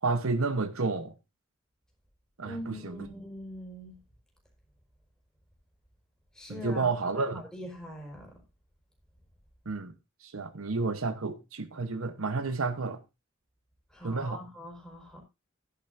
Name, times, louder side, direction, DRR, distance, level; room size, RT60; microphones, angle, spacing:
voice 1, 0.0-1.1 2.4-3.1 6.5-7.4 9.7-9.9 10.2-13.0 14.0-14.4, right 3 dB, 80° right, 1.1 m, -31 dB
voice 2, 2.4-3.9 6.3-8.3 13.9-15.2, equal, 5° left, 4.6 m, -42 dB
14.0 x 10.5 x 2.7 m
head